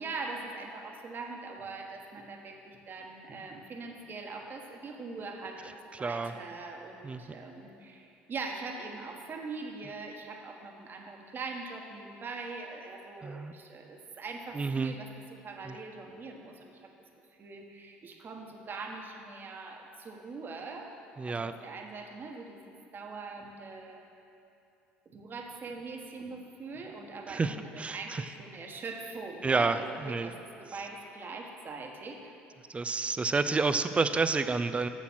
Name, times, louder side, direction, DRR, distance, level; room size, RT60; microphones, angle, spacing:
voice 1, 0.0-16.9 17.4-21.0 21.3-22.6 22.9-24.0 25.0-32.3, right 3 dB, 40° right, 2 dB, 1.2 m, -42 dB
voice 2, 5.9-6.3 7.0-7.2 13.2-13.5 14.5-14.9 15.6-15.8 21.2-21.5 27.3-28.3 29.4-30.3 32.7-34.9, right 4 dB, 25° right, 11 dB, 0.5 m, -29 dB
7.4 x 7.3 x 6.2 m, 2.6 s
hypercardioid pair, 70°, 5 cm